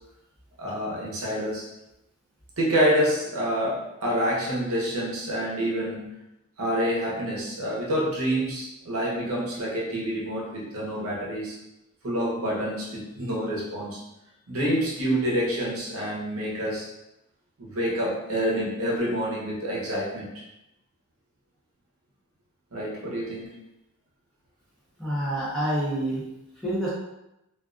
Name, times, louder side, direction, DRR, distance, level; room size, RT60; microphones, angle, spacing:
voice 1, 0.6-1.7 2.6-6.2 6.6-11.6 12.0-14.0 14.5-16.9 17.6-20.3 22.7-23.6, equal, 70° right, -4 dB, 0.8 m, -27 dB
voice 2, 25.0-26.2 26.6-26.9, right 1 dB, ahead, -10 dB, 0.7 m, -27 dB
2.4 x 2.4 x 2.3 m, 0.90 s
head